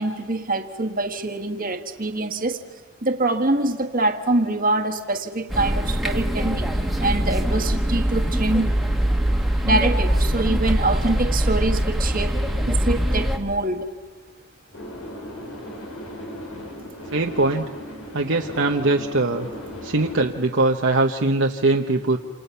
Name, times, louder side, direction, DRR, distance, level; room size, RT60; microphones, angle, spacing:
voice 1, 0.0-2.6 3.0-6.7 7.0-8.8 9.6-12.4 12.7-13.9, right 2 dB, 40° right, 6 dB, 1.6 m, -24 dB
sound 1, 5.5-13.4, equal, ahead, 1.6 m, -22 dB
sound 2, 14.7-20.3, left 1 dB, 90° left, 5.2 m, -37 dB
voice 2, 17.1-17.6 18.1-19.5 19.8-22.2, right 2 dB, 60° right, 2 dB, 1.0 m, -21 dB
28.0 x 28.0 x 5.7 m, 1.4 s
head